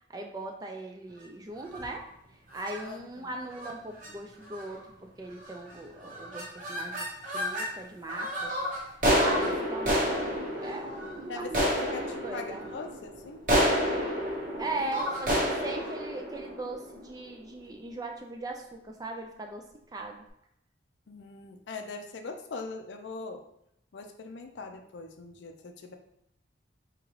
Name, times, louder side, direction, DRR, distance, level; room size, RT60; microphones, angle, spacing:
voice 1, 0.1-2.0 2.5-7.1 7.3-8.5 9.1-10.3 10.6-12.7 14.6-19.6 19.9-20.2, right 2 dB, 20° right, 2 dB, 0.3 m, -39 dB
sound 1, 1.6-2.0 2.5-2.8 3.5-3.7 4.0-4.1 4.4-4.8 5.4-5.7 6.0-7.7 8.1-17.3, equal, 45° right, 0.9 m, -30 dB
voice 2, 2.8-3.3 11.3-13.4 21.1-23.4 23.9-25.9, left 3 dB, 70° left, 5 dB, 0.4 m, -41 dB
3.7 x 2.9 x 3.0 m, 0.77 s
head